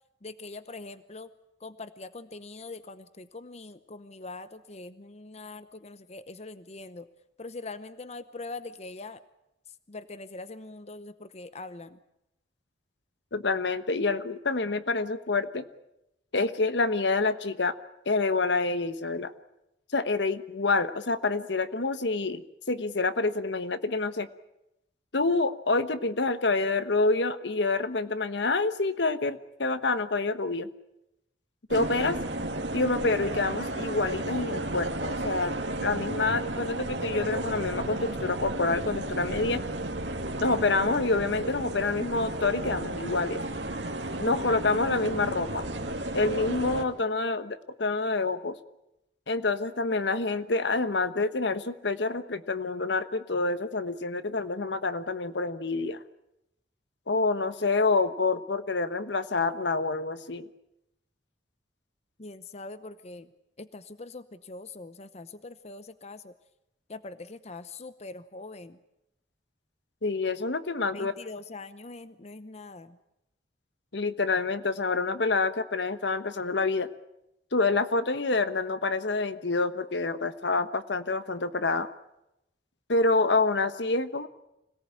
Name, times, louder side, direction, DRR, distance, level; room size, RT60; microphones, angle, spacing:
voice 1, 0.2-1.3 1.6-7.1 7.4-9.2 9.9-12.0 62.2-63.3 63.6-66.3 66.9-68.8 70.9-73.0, left 3 dB, 35° left, 13 dB, 0.8 m, -42 dB
voice 2, 13.3-15.7 16.3-17.7 18.0-19.3 19.9-22.4 22.7-24.3 25.1-30.7 31.7-32.2 32.7-39.6 40.4-43.4 44.2-45.7 46.1-48.6 49.3-56.0 57.1-60.5 70.0-71.1 73.9-76.9 77.5-81.9 82.9-84.3, left 3 dB, 70° left, 12 dB, 1.2 m, -27 dB
sound 1, 31.7-46.8, right 1 dB, 75° right, 2.4 m, -33 dB
26.0 x 18.0 x 8.8 m, 0.87 s
head